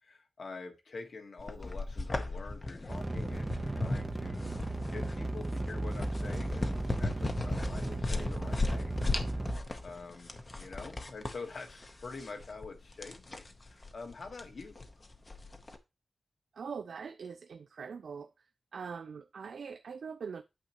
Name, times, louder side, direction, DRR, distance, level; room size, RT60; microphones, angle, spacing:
voice 1, 0.0-9.1 9.5-14.9, left 4 dB, 60° left, 1.3 m, -46 dB
sound 1, 1.4-15.8, left 2 dB, 30° left, 0.8 m, -37 dB
sound 2, 2.9-9.7, right 2 dB, 15° right, 0.7 m, -36 dB
voice 2, 16.5-18.3 18.7-20.4, right 6 dB, 80° right, 0.4 m, -42 dB
8.8 x 6.5 x 2.9 m
wide cardioid pair, 155°, 0 cm